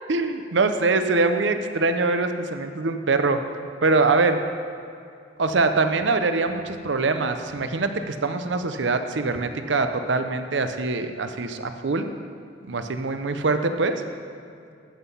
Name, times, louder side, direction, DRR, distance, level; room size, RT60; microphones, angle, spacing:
voice 1, 0.1-3.4 3.8-4.4 5.4-12.1 12.7-14.0, right 3 dB, 75° right, 8 dB, 0.7 m, -23 dB
14.0 x 5.8 x 5.5 m, 2.4 s
head